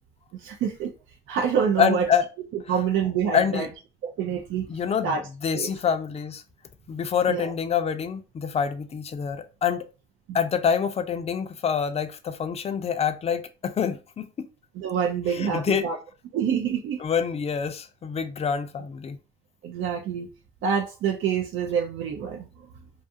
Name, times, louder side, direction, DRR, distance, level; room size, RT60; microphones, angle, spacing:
voice 1, 0.4-0.9 1.3-2.1 2.7-3.7 4.0-4.7 5.0-5.2 5.5-5.7 7.3-7.5 14.8-16.0 16.3-17.0 19.6-20.3 20.6-22.5, right 7 dB, 80° right, 0.4 m, -26 dB
voice 2, 1.8-2.2 3.3-3.7 4.7-5.1 5.4-6.4 6.9-9.9 10.3-14.5 15.3-15.8 17.0-19.2, left 7 dB, 30° left, 0.4 m, -26 dB
2.4 x 2.4 x 2.6 m
cardioid pair, 90°, 20 cm